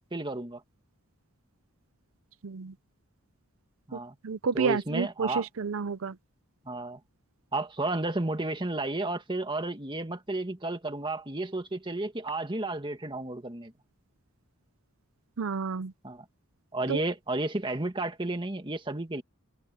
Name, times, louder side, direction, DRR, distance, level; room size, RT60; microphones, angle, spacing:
voice 1, 0.1-0.6 3.9-4.2 4.5-5.5 6.7-7.0 7.5-13.7 16.0-16.3 16.7-19.2, right 2 dB, 25° right, 1.7 m, -32 dB
voice 2, 2.4-2.7 4.2-6.1 15.4-15.9 16.9-17.0, right 5 dB, 75° right, 0.6 m, -30 dB
head